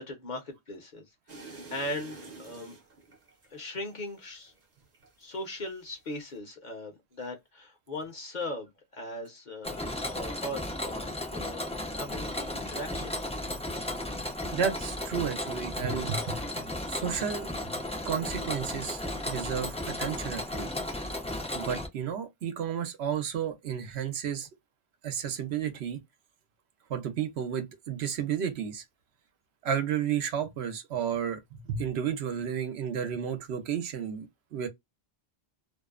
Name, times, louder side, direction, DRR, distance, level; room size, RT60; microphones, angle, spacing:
voice 1, 0.0-2.8 3.5-4.5 5.2-9.8 10.1-11.7 12.0-13.2 19.6-19.8, left 1 dB, 50° left, 0.8 m, -39 dB
sound 1, 1.3-5.4 5.8-6.4, right 3 dB, 45° right, 0.8 m, -48 dB
Mechanisms, 9.6-21.9, left 1 dB, 10° left, 0.4 m, -35 dB
voice 2, 14.5-16.5 16.9-17.7 18.0-20.7 21.5-24.5 25.0-26.0 26.9-28.8 29.6-34.3 34.5-34.7, right 8 dB, 75° right, 0.9 m, -32 dB
2.6 x 2.1 x 2.3 m
omnidirectional pair, 1.1 m